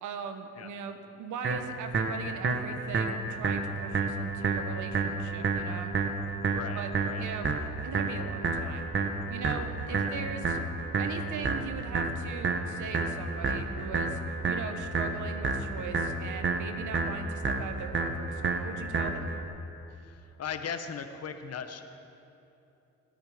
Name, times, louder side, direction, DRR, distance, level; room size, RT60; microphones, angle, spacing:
voice 1, 0.0-5.9 6.7-6.9 7.2-8.9 9.3-10.6 11.0-14.2 14.5-19.3, right 6 dB, 75° right, 7 dB, 1.5 m, -40 dB
sound 1, 1.4-19.4, right 4 dB, 40° right, 1.5 m, -30 dB
voice 2, 6.5-7.5 9.9-10.2 19.9-21.8, left 7 dB, 55° left, 7 dB, 1.3 m, -39 dB
27.5 x 9.3 x 5.2 m, 2.8 s
cardioid pair, 90°, 30 cm